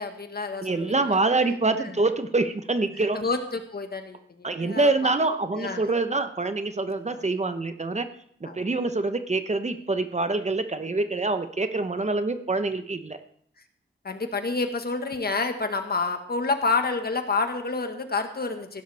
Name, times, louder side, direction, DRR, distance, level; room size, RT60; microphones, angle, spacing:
voice 1, 0.0-1.2 3.1-4.9 5.6-5.8 7.1-7.2 8.5-8.6 14.0-18.8, left 3 dB, 55° left, 6 dB, 1.6 m, -28 dB
voice 2, 0.6-3.2 4.4-8.1 8.4-13.2, right 3 dB, 35° right, 9 dB, 1.0 m, -25 dB
16.0 x 11.0 x 3.5 m, 0.63 s
cardioid pair, 65°, 20 cm